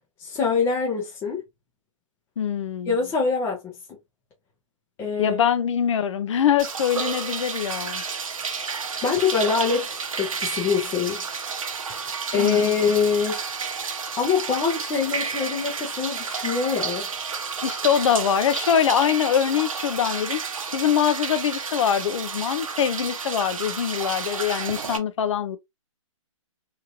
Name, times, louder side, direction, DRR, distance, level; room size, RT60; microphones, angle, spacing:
voice 1, 0.2-1.4 2.9-4.0 5.0-5.4 9.0-9.9 10.2-11.2 11.9-13.4 14.2-17.1, left 5 dB, 15° left, 0.6 m, -24 dB
voice 2, 2.4-2.9 5.2-8.0 12.3-12.7 17.6-25.6, left 8 dB, 65° left, 0.6 m, -23 dB
sound 1, 6.6-25.0, right 5 dB, 85° right, 0.7 m, -31 dB
3.0 x 2.7 x 2.4 m
hypercardioid pair, 150°, 17 cm